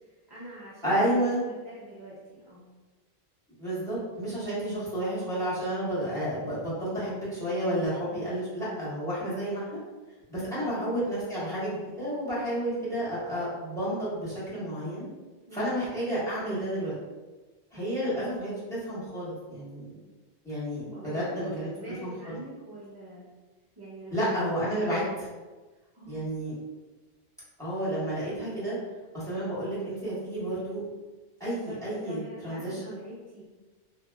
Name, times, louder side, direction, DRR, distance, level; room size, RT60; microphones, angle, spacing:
voice 1, 0.0-2.6 3.6-3.8 8.1-8.4 10.5-10.7 15.5-15.8 17.7-17.9 20.8-23.3 23.8-24.4 25.8-26.3 31.7-33.4, right 1 dB, 30° right, -9 dB, 0.6 m, -45 dB
voice 2, 0.8-1.4 3.6-9.8 10.3-15.1 15.5-16.9 17.7-19.9 20.4-21.7 22.0-22.3 24.1-25.3 26.1-26.5 27.6-28.8 29.1-30.8 31.4-32.2 32.4-32.9, right 1 dB, 5° left, -10 dB, 1.3 m, -31 dB
2.9 x 2.7 x 2.2 m, 1.2 s
omnidirectional pair, 1.0 m